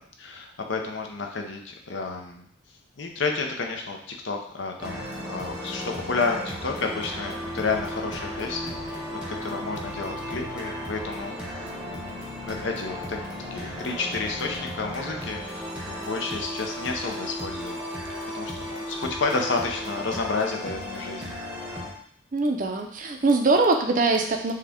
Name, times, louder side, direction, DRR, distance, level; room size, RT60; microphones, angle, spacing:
voice 1, 0.2-2.5 3.0-9.0 9.4-11.3 12.0-13.2 13.5-17.8 18.3-21.4, left 4 dB, 60° left, 3 dB, 0.7 m, -31 dB
sound 1, 4.8-21.9, left 1 dB, 5° right, 0.8 m, -35 dB
voice 2, 22.3-24.5, right 3 dB, 40° right, 3 dB, 0.5 m, -22 dB
6.4 x 2.3 x 3.6 m, 0.64 s
head